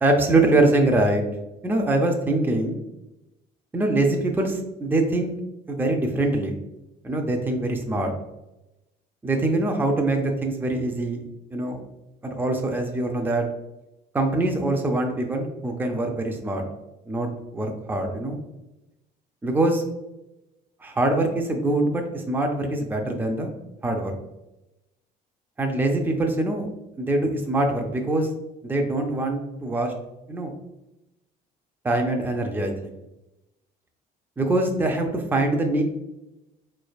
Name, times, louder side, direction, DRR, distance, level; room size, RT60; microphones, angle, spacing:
voice 1, 0.0-1.2 1.6-2.8 3.7-5.4 5.7-6.5 7.0-8.1 9.2-11.8 12.2-13.4 14.1-16.6 17.1-18.4 19.4-19.8 20.8-23.5 23.8-24.2 25.6-26.7 27.0-28.3 28.6-29.9 30.3-30.5 31.8-33.0 34.4-35.8, right 2 dB, 10° right, 2 dB, 0.5 m, -23 dB
4.1 x 3.2 x 2.3 m, 0.94 s
cardioid pair, 110°, 17 cm